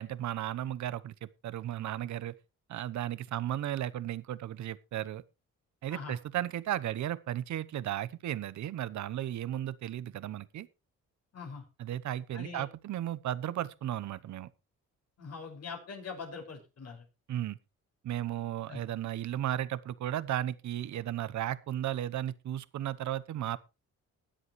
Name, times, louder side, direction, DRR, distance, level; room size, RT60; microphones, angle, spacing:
voice 1, 0.0-2.3 2.7-5.2 5.8-10.7 11.8-14.5 17.3-17.6 18.0-23.6, right 12 dB, 70° right, 1.0 m, -35 dB
voice 2, 11.3-11.6 12.3-12.6 15.2-17.0 18.7-18.8, left 5 dB, 55° left, 5.9 m, -42 dB
21.0 x 7.9 x 3.2 m
cardioid pair, 90°, 30 cm